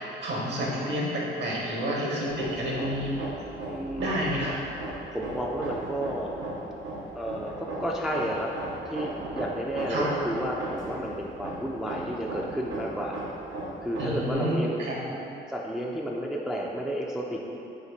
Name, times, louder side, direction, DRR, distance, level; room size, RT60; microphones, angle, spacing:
voice 1, 0.0-3.2 4.0-4.6 9.9-10.2 14.0-15.2, equal, 65° right, -4 dB, 1.1 m, -29 dB
Hammer, 2.3-14.3, right 2 dB, 80° right, 0.7 m, -37 dB
voice 2, 3.7-4.1 5.1-6.3 7.1-8.5 8.8-13.1 13.8-14.7 15.5-17.6, equal, 5° right, -2 dB, 0.3 m, -31 dB
4.3 x 2.6 x 3.9 m, 2.8 s
cardioid pair, 90°, 20 cm